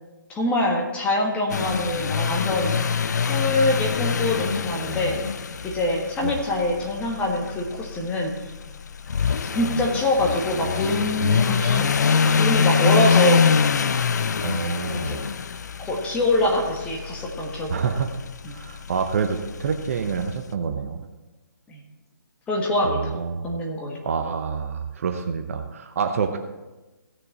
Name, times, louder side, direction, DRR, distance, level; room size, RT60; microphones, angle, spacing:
voice 1, 0.3-2.7 3.3-5.2 5.6-8.3 9.5-13.5 14.9-15.2 15.8-18.0 18.4-18.6 21.7-21.8 22.5-23.1 23.4-24.0, left 1 dB, 10° left, -1 dB, 1.5 m, -24 dB
sound 1, 1.5-20.4, left 6 dB, 50° left, 0.5 m, -25 dB
voice 2, 14.4-15.1 17.7-18.1 18.5-21.0 22.8-23.5 24.0-26.4, right 6 dB, 40° right, 6 dB, 0.8 m, -27 dB
16.0 x 6.6 x 4.2 m, 1.1 s
figure-of-eight pair, 145°, 11 cm